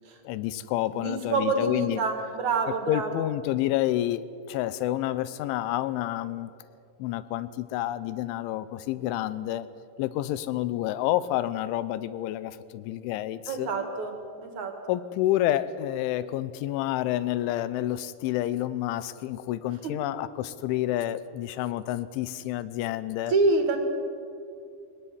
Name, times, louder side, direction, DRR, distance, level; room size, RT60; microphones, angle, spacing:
voice 1, 0.2-2.0 2.7-6.5 7.0-9.7 10.0-13.7 14.9-23.3, left 13 dB, 85° left, 15 dB, 3.2 m, -29 dB
voice 2, 0.9-3.1 13.5-14.1 14.4-14.8 19.8-19.9 23.3-23.9, right 3 dB, 50° right, 5 dB, 2.9 m, -27 dB
22.5 x 17.5 x 9.7 m, 2.5 s
omnidirectional pair, 5.4 m